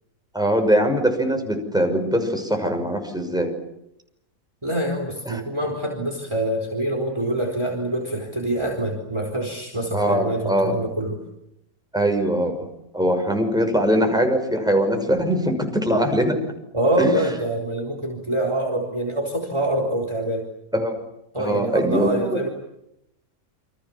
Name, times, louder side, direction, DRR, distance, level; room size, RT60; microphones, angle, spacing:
voice 1, 0.3-3.5 5.3-5.4 9.9-10.7 11.9-12.7 12.9-16.4 17.0-17.1 20.7-21.0 21.4-22.4, equal, ahead, 4 dB, 6.0 m, -21 dB
voice 2, 4.6-11.2 16.7-20.5 21.3-22.5, right 1 dB, 20° right, 1 dB, 4.0 m, -25 dB
29.5 x 26.0 x 7.3 m, 0.82 s
omnidirectional pair, 1.6 m